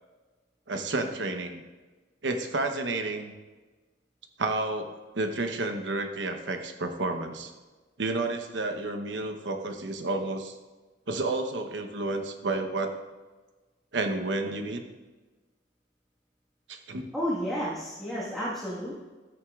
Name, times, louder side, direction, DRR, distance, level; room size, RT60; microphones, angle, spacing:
voice 1, 0.7-1.6 2.2-3.3 4.4-7.5 8.0-10.5 11.1-13.0 13.9-14.8 16.7-17.1, right 2 dB, 85° right, 6 dB, 1.0 m, -31 dB
voice 2, 17.1-19.0, equal, ahead, -8 dB, 1.5 m, -31 dB
13.0 x 9.4 x 2.4 m, 1.3 s
head